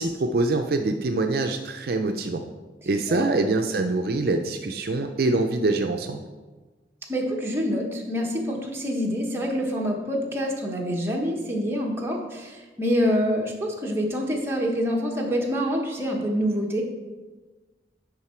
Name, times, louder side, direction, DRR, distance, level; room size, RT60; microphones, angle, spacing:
voice 1, 0.0-2.4 2.9-6.2, right 2 dB, 55° right, 5 dB, 0.4 m, -24 dB
voice 2, 7.1-16.8, equal, 15° right, -1 dB, 1.0 m, -26 dB
10.5 x 3.7 x 4.4 m, 1.3 s
head